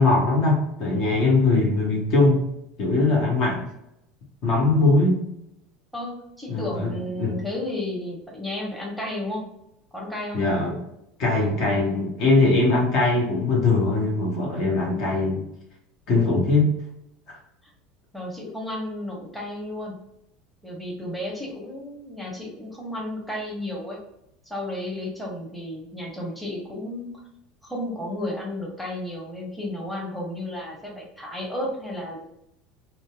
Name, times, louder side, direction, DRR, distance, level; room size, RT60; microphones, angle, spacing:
voice 1, 0.0-2.4 2.8-3.6 4.4-5.2 6.5-7.3 10.3-10.8 11.2-15.4 16.1-16.7, left 3 dB, 55° left, -2 dB, 0.8 m, -21 dB
voice 2, 5.9-9.4 9.9-10.4 18.1-19.9 20.6-24.0 24.5-27.1 27.6-32.2, left 1 dB, ahead, -3 dB, 0.8 m, -33 dB
2.6 x 2.0 x 2.3 m, 0.80 s
hypercardioid pair, 75°, 0 cm